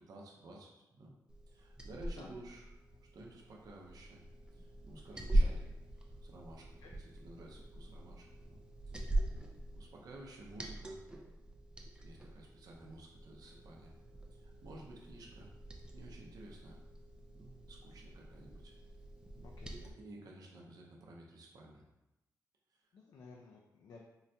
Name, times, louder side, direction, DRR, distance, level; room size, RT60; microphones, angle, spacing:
voice 1, 0.1-1.2 1.5-2.7 3.1-4.2 4.5-5.7 6.0-11.0 12.0-13.9 14.3-15.5 15.9-16.8 17.3-18.7 19.3-19.6 20.0-21.8 22.7-22.8, right 2 dB, 65° right, -2 dB, 0.6 m, -54 dB
Liquid, 1.3-19.9, right 1 dB, 15° right, 0.3 m, -41 dB
voice 2, 19.4-19.9 22.9-24.0, left 4 dB, 70° left, -1 dB, 0.4 m, -55 dB
3.7 x 2.1 x 2.7 m, 0.95 s
cardioid pair, 110°, 7 cm